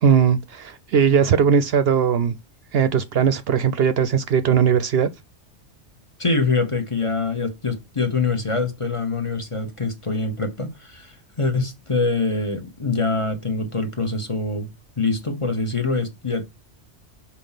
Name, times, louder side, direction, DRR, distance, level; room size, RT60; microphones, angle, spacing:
voice 1, 0.0-2.4 2.7-5.1, right 7 dB, 65° right, 0.8 m, -19 dB
voice 2, 6.2-14.7 15.0-16.4, left 3 dB, 30° left, 1.0 m, -24 dB
5.2 x 4.4 x 5.7 m
omnidirectional pair, 1.2 m